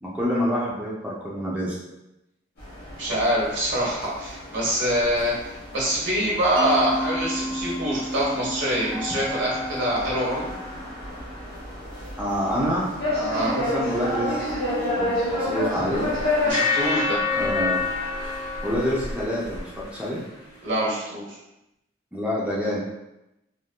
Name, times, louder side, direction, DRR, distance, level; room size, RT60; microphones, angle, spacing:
voice 1, 0.0-1.8 12.2-14.4 15.0-16.1 17.3-17.8 18.6-20.2 22.1-22.8, equal, 5° right, -6 dB, 0.5 m, -27 dB
sound 1, 2.6-16.5, left 1 dB, 55° left, 1.4 m, -31 dB
voice 2, 3.0-5.3 5.7-10.5 13.3-13.5 16.4-17.2 20.6-21.3, equal, 85° right, -5 dB, 1.2 m, -25 dB
Mallet percussion, 6.6-11.3, equal, 60° right, 1.2 m, -33 dB
sound 2, 15.9-20.2, left 4 dB, 25° left, 0.8 m, -27 dB
3.5 x 2.6 x 2.3 m, 0.91 s
head